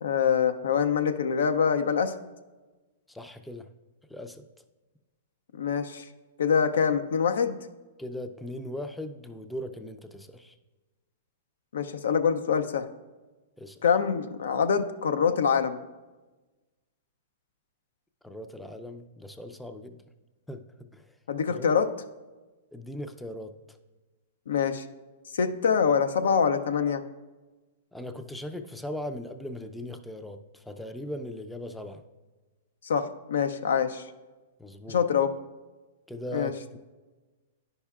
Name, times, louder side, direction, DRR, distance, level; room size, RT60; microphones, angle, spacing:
voice 1, 0.0-2.1 5.6-6.0 6.4-7.6 11.7-12.9 13.8-15.8 21.3-21.9 24.5-24.8 25.3-27.0 32.8-34.0 34.9-35.3 36.3-36.5, left 6 dB, 80° left, 10 dB, 0.4 m, -25 dB
voice 2, 3.1-3.7 4.1-4.4 8.0-10.5 13.6-13.8 18.2-20.0 20.5-21.0 21.5-21.7 22.7-23.8 27.9-32.0 34.6-35.0 36.1-36.8, left 1 dB, 5° left, 7 dB, 0.4 m, -39 dB
9.9 x 5.4 x 2.4 m, 1.2 s
hypercardioid pair, 125°, 0 cm